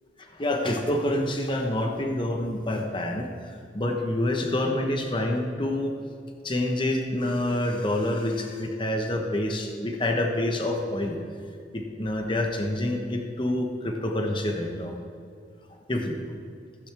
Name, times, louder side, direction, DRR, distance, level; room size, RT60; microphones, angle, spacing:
voice 1, 0.2-5.9 6.4-11.2 11.7-15.0 15.9-16.2, left 1 dB, 25° left, 3 dB, 1.0 m, -27 dB
15.5 x 9.4 x 3.4 m, 2.3 s
head